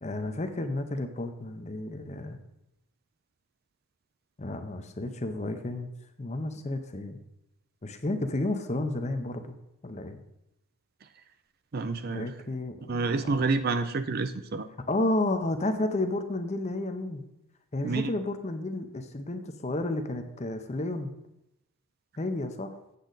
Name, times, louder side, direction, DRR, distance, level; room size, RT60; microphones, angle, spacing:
voice 1, 0.0-2.4 4.4-5.9 6.2-7.2 7.8-9.6 9.8-10.2 12.1-13.4 14.9-17.2 17.7-21.1 22.2-22.8, left 2 dB, 30° left, 8 dB, 0.7 m, -32 dB
voice 2, 11.7-12.3 12.9-14.7 17.8-18.1, right 3 dB, 45° right, 11 dB, 0.4 m, -28 dB
8.3 x 7.6 x 4.0 m, 0.85 s
head